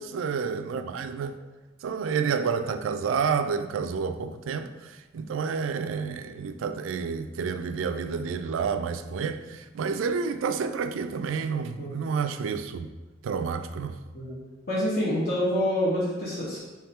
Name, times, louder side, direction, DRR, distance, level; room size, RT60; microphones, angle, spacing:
voice 1, 0.0-1.3 1.8-12.9 13.2-14.0, right 5 dB, 75° right, 9 dB, 0.3 m, -29 dB
voice 2, 14.7-16.6, left 1 dB, 50° left, -7 dB, 1.0 m, -27 dB
3.5 x 3.1 x 4.2 m, 1.1 s
head